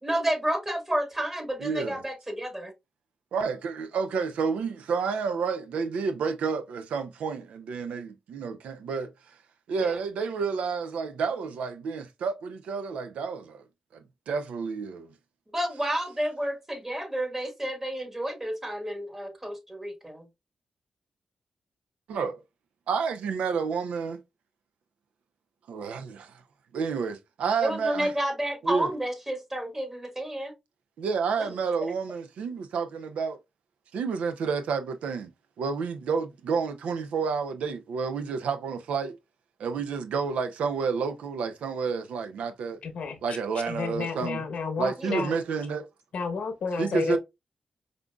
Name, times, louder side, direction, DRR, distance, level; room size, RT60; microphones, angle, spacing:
voice 1, 0.0-2.7 9.8-10.0 15.5-20.3 27.6-30.5 31.4-31.5 31.8-31.9 45.0-45.3, right 1 dB, 20° right, 1.4 m, -30 dB
voice 2, 1.6-2.0 3.3-9.1 9.7-13.6 13.9-15.1 22.1-22.4 22.9-24.2 25.7-26.4 26.7-28.1 28.6-28.9 31.0-33.4 33.9-35.3 35.6-39.2 39.6-42.8 43.2-44.4 44.8-45.9 46.8-47.2, right 5 dB, 85° right, 0.4 m, -30 dB
voice 3, 42.8-43.4 43.7-45.4 46.1-47.2, left 5 dB, 75° left, 0.8 m, -31 dB
5.0 x 2.4 x 2.2 m
cardioid pair, 50°, 2 cm